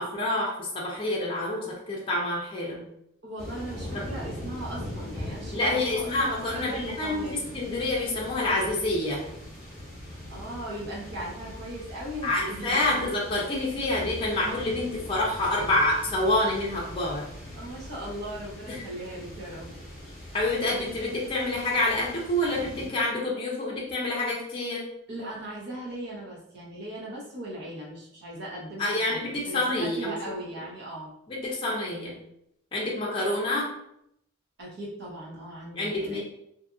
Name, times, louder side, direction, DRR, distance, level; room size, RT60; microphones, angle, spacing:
voice 1, 0.0-2.8 3.9-4.0 5.5-7.3 7.5-9.2 12.2-17.2 18.7-18.8 20.3-24.8 28.8-30.2 31.3-32.1 32.7-33.7 35.7-36.2, left 1 dB, 25° left, -4 dB, 0.5 m, -27 dB
voice 2, 3.2-6.3 6.5-7.4 10.3-12.9 17.5-19.7 25.1-31.1 34.6-36.2, right 1 dB, 55° right, -5 dB, 0.9 m, -38 dB
sound 1, 3.4-22.9, equal, ahead, 1.2 m, -41 dB
2.7 x 2.5 x 2.5 m, 0.76 s
head